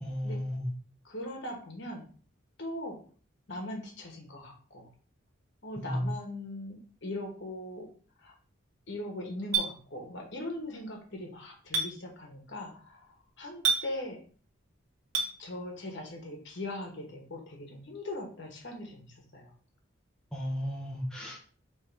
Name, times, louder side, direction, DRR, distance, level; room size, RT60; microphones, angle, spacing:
voice 1, 0.0-0.7 5.8-6.1 20.3-21.4, equal, 5° left, -4 dB, 0.7 m, -34 dB
voice 2, 1.0-2.1 2.6-3.0 3.5-4.9 5.6-7.9 8.2-8.3 8.9-14.2 15.4-19.5, left 1 dB, 55° left, 1 dB, 1.1 m, -40 dB
Chink clink, 9.5-9.7 11.7-11.9 13.6-13.8 15.1-15.3, right 5 dB, 75° right, 0.9 m, -26 dB
3.5 x 3.1 x 4.4 m, 0.42 s
head